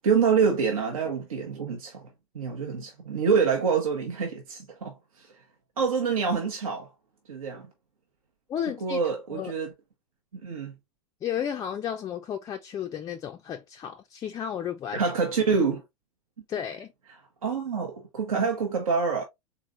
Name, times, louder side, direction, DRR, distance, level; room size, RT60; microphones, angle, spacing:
voice 1, 0.0-2.1 2.3-5.3 5.8-6.9 7.3-7.7 8.8-9.7 10.3-10.7 14.9-15.8 17.4-19.2, right 5 dB, 70° right, 0.9 m, -26 dB
voice 2, 8.5-9.0 9.3-9.5 11.2-15.0 16.5-16.9, left 9 dB, 20° left, 0.4 m, -33 dB
3.9 x 3.0 x 2.5 m
figure-of-eight pair, 90°, 19 cm